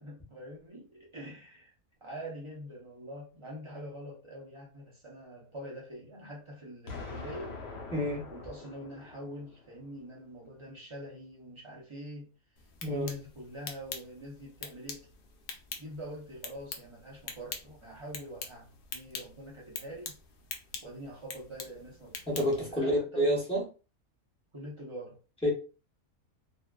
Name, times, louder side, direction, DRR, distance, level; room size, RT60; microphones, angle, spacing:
voice 1, 0.0-1.7 2.0-7.6 8.3-12.3 12.8-15.1 15.8-20.2 20.8-22.4 22.7-23.4 24.5-25.2, equal, 50° right, 0.3 m, -44 dB
Explosion, 6.9-9.8, left 4 dB, 55° left, 0.8 m, -44 dB
voice 2, 7.9-8.2 12.8-13.1 22.3-23.6 25.4-25.5, equal, 5° left, 0.6 m, -28 dB
sound 1, 12.6-22.7, left 5 dB, 85° left, 0.4 m, -45 dB
2.5 x 2.3 x 2.2 m
omnidirectional pair, 1.5 m